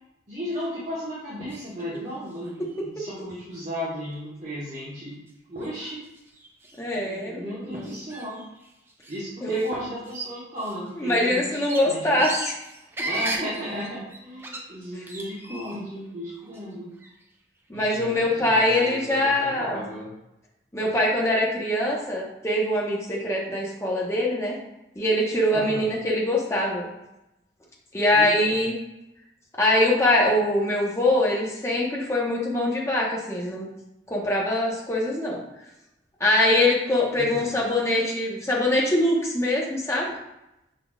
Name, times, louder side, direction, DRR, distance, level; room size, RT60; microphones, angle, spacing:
voice 1, 0.3-5.2 5.5-6.0 7.0-8.4 9.1-12.2 13.0-16.9 17.7-20.1 25.5-25.9 28.1-28.6 37.1-37.5, equal, 40° right, -9 dB, 1.2 m, -35 dB
sound 1, 1.5-2.0 2.3-2.9 3.5-3.6 4.0-4.2 4.6-4.8 5.3-5.4 5.6-6.9 7.7-9.2 9.5-9.7 10.0-16.0 16.3-17.2, right 1 dB, 15° right, 0.4 m, -37 dB
voice 2, 6.8-8.0 9.4-9.7 11.0-12.5 17.7-19.9 20.7-24.6 25.0-26.9 27.9-28.7 29.6-33.7 34.1-35.4 36.2-40.1, left 1 dB, 15° left, -3 dB, 0.9 m, -23 dB
5.7 x 3.9 x 2.3 m, 0.90 s
head